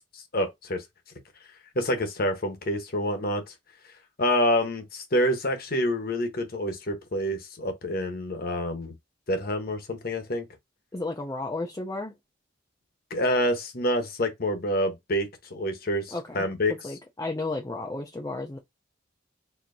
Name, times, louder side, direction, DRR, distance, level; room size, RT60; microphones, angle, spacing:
voice 1, 0.3-0.8 1.7-3.4 4.2-8.9 9.3-10.5 13.1-16.7, equal, 55° left, 1.0 m, -27 dB
voice 2, 10.9-12.1 16.1-16.5 16.8-18.6, left 2 dB, 20° left, 0.5 m, -33 dB
4.4 x 2.8 x 2.6 m
head